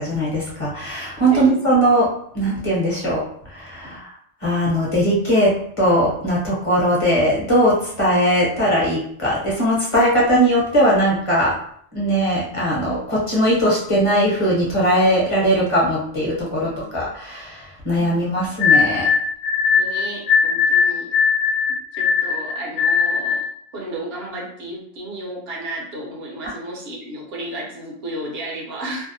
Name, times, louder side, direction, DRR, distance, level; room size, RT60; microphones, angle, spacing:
voice 1, 0.0-2.1 2.3-3.2 3.5-4.1 4.4-11.5 11.9-19.1, equal, 30° left, -5 dB, 0.8 m, -19 dB
voice 2, 16.5-17.1 19.7-21.1 21.7-23.4 23.7-29.1, right 1 dB, 65° right, -2 dB, 0.9 m, -33 dB
sound 1, 18.6-23.5, left 6 dB, 90° left, 0.9 m, -19 dB
2.6 x 2.1 x 2.6 m, 0.64 s
omnidirectional pair, 1.2 m